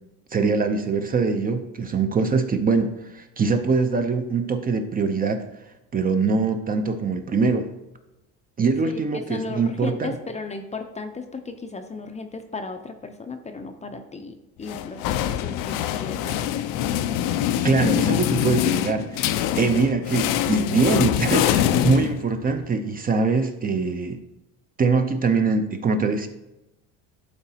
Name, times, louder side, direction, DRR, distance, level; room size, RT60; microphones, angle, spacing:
voice 1, 0.3-5.4 5.9-7.7 8.6-10.1 17.6-24.2 24.8-26.3, right 4 dB, 25° right, 7 dB, 0.6 m, -23 dB
voice 2, 8.8-15.1 15.4-16.6, left 3 dB, 20° left, 6 dB, 0.5 m, -35 dB
sound 1, 14.7-22.6, left 11 dB, 70° left, 0.5 m, -24 dB
11.5 x 4.0 x 2.8 m, 0.93 s
cardioid pair, 115°, 34 cm